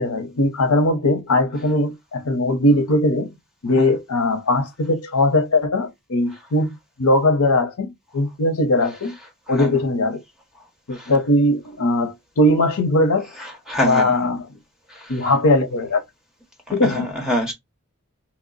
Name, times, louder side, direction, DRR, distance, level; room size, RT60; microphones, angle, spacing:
voice 1, 0.0-3.3 3.6-9.2 9.5-10.2 10.9-13.3 13.8-14.5 15.1-16.0 16.7-17.1, left 1 dB, 75° left, 0.7 m, -20 dB
voice 2, 13.4-14.1 14.9-15.3 16.7-17.5, equal, ahead, 1.1 m, -26 dB
3.0 x 2.0 x 3.9 m
head